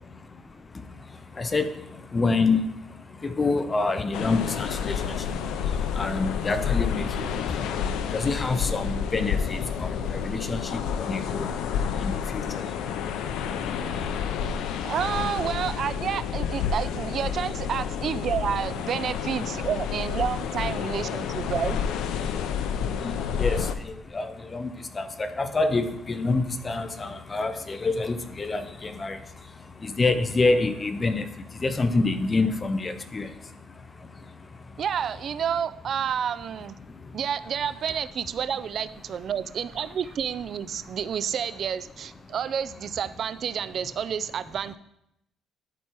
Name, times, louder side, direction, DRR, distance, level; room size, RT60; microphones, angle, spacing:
voice 1, 0.2-14.9 19.4-19.5 22.2-34.8 36.8-37.2 40.8-40.9 42.2-42.3, left 3 dB, 25° left, 10 dB, 0.6 m, -29 dB
sound 1, 4.1-23.7, left 7 dB, 85° left, 0.6 m, -29 dB
voice 2, 14.8-21.8 34.8-36.8 37.1-44.8, right 8 dB, 50° right, 15 dB, 0.4 m, -29 dB
11.5 x 4.4 x 4.6 m, 0.80 s
cardioid pair, 125°, 0 cm